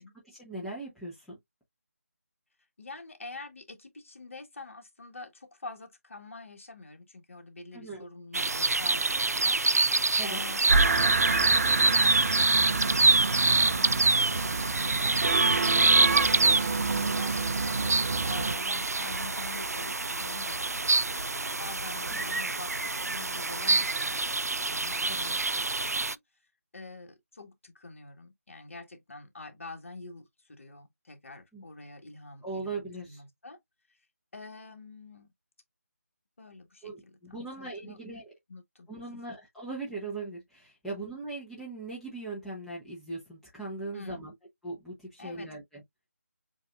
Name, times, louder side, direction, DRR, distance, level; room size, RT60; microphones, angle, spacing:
voice 1, 0.3-1.4 7.7-8.0 10.2-10.4 25.1-25.2 31.5-31.6 32.4-33.2 36.8-38.3 38.9-44.3 44.6-45.8, right 2 dB, ahead, 0.7 m, -39 dB
voice 2, 2.8-21.2 21.6-26.2 26.7-32.7 33.1-33.6 34.3-35.3 36.4-38.0 38.5-39.2 40.9-41.0 43.9-44.3 45.2-45.5, left 3 dB, 55° left, 1.7 m, -46 dB
sound 1, 8.3-26.1, right 3 dB, 80° right, 0.4 m, -26 dB
sound 2, 10.7-18.5, right 4 dB, 50° right, 0.7 m, -28 dB
7.3 x 2.5 x 2.4 m
figure-of-eight pair, 160°, 8 cm